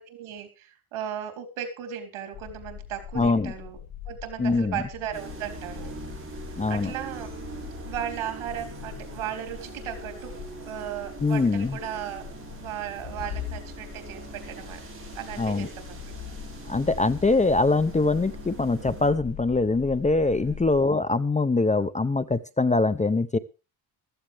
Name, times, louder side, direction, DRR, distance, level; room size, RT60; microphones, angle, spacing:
voice 1, 0.0-3.8 4.1-6.4 6.7-7.3 7.8-10.4 10.6-12.3 12.6-14.8 15.2-16.1 20.4-20.7, right 10 dB, 85° right, 6 dB, 3.7 m, -36 dB
sound 1, 2.3-20.8, left 9 dB, 75° left, 1.9 m, -42 dB
voice 2, 3.1-3.5 4.4-4.8 6.6-6.9 11.2-11.8 15.4-15.7 16.7-23.4, left 3 dB, 15° left, 14 dB, 0.6 m, -23 dB
sound 2, 5.1-19.1, right 4 dB, 25° right, 5.7 m, -43 dB
15.0 x 14.0 x 3.5 m, 0.31 s
cardioid pair, 120°, 48 cm